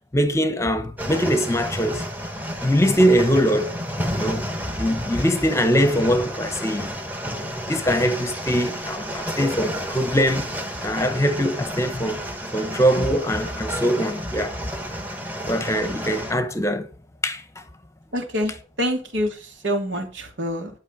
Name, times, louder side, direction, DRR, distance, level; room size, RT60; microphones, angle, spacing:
voice 1, 0.1-2.1 2.6-3.8 4.1-4.5 4.7-6.9 7.2-10.5 10.8-12.2 12.5-14.5 15.5-16.9 17.2-17.4, equal, 15° left, 1.0 m, -22 dB
sound 1, 1.0-16.3, equal, 10° right, 1.6 m, -31 dB
voice 2, 18.1-20.7, equal, 65° right, 2.8 m, -26 dB
11.5 x 5.6 x 7.5 m
head